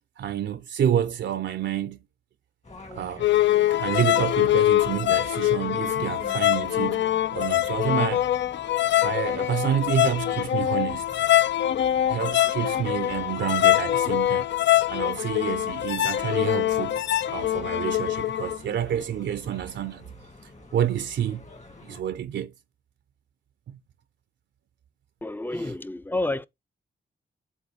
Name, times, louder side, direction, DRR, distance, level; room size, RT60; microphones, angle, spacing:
voice 1, 0.2-2.0 2.9-3.3 3.7-8.3 9.0-11.1 12.1-14.5 14.9-20.0 20.4-21.4 21.8-22.5 23.7-23.8 25.6-25.7, right 10 dB, 80° right, 0.5 m, -29 dB
sound 1, 2.6-22.0, left 2 dB, 40° left, 1.8 m, -47 dB
sound 2, 3.2-18.6, left 13 dB, 80° left, 0.4 m, -24 dB
voice 2, 25.2-26.5, left 2 dB, 10° left, 0.4 m, -29 dB
8.0 x 3.0 x 5.0 m
cardioid pair, 90°, 18 cm